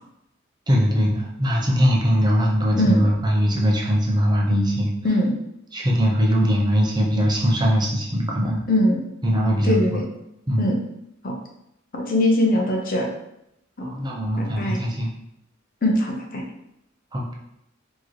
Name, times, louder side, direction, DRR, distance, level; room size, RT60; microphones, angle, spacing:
voice 1, 0.7-4.9 5.7-8.6 9.2-10.0 10.5-10.6 13.8-15.1 17.1-17.3, equal, 20° right, -2 dB, 0.7 m, -21 dB
voice 2, 8.7-9.0 9.6-10.0 10.6-10.8 11.2-11.3 11.9-13.1 14.4-14.8 15.8-16.4, left 1 dB, 45° left, 1 dB, 0.7 m, -21 dB
4.4 x 3.0 x 3.1 m, 0.80 s
head